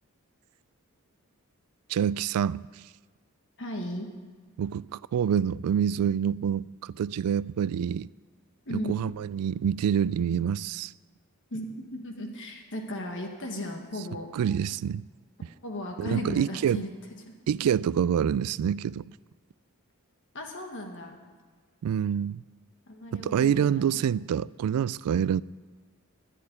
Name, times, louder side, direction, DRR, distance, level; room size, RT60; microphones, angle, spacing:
voice 1, 1.9-2.6 4.6-8.1 8.7-10.9 14.3-15.0 16.0-16.8 17.5-19.1 21.8-22.4 23.1-25.4, right 8 dB, 80° right, 0.3 m, -26 dB
voice 2, 3.6-4.1 8.6-9.0 11.5-14.3 15.6-17.2 20.3-21.2 22.9-24.0, left 1 dB, 55° left, 1.5 m, -36 dB
11.0 x 8.5 x 9.6 m
head